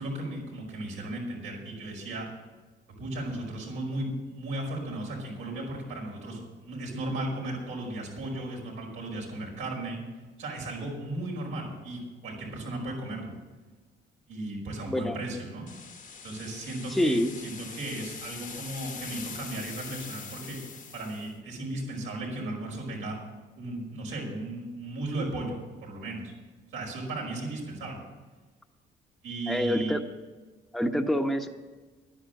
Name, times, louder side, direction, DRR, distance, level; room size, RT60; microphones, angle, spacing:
voice 1, 0.0-2.3 3.0-10.0 10.4-13.3 14.3-15.7 16.2-20.6 20.9-23.2 23.6-26.3 26.7-28.0 29.2-30.0, right 1 dB, 85° right, -1 dB, 5.2 m, -35 dB
voice 2, 14.9-15.2 16.9-17.3 29.5-30.0 30.7-31.5, equal, ahead, 4 dB, 1.0 m, -26 dB
sound 1, 15.7-21.3, left 6 dB, 40° left, 1.2 m, -43 dB
10.5 x 10.5 x 7.7 m, 1.3 s
cardioid pair, 90°, 20 cm